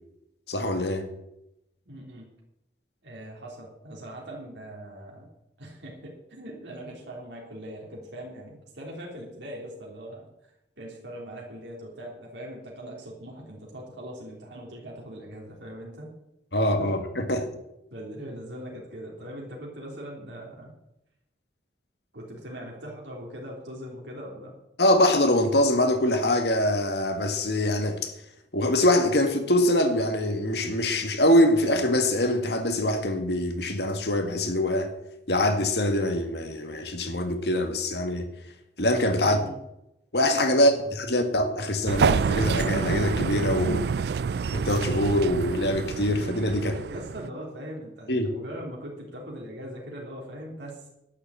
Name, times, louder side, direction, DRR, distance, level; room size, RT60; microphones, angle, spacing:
voice 1, 0.5-1.1 16.5-17.5 24.8-28.1 28.5-34.9 35.3-38.3 38.8-39.4 40.1-43.9 44.5-46.8 48.1-48.3, left 1 dB, 70° left, 1.9 m, -24 dB
voice 2, 1.8-2.3 3.0-5.3 5.6-16.1 16.8-16.9 17.9-20.7 22.1-24.5 39.2-39.6 40.5-40.7 46.7-50.9, equal, 85° right, 3.4 m, -41 dB
sound 1, 41.9-47.3, right 5 dB, 65° right, 0.3 m, -27 dB
11.5 x 7.1 x 8.5 m
head